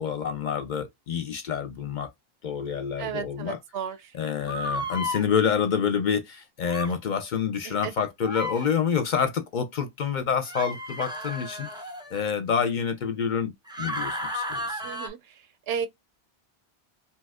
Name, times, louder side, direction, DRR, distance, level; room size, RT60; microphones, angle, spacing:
voice 1, 0.0-2.1 2.4-3.6 4.1-11.7 12.1-13.5 13.8-14.8, left 7 dB, 60° left, 0.6 m, -27 dB
voice 2, 3.0-4.0 4.4-4.5 7.7-7.9 14.8-15.2 15.7-15.9, right 7 dB, 75° right, 0.8 m, -33 dB
sound 1, 4.5-5.2 6.6-6.9 8.2-8.7 10.4-12.3 13.7-15.1, left 1 dB, 5° right, 0.4 m, -33 dB
2.8 x 2.3 x 3.4 m
omnidirectional pair, 1.1 m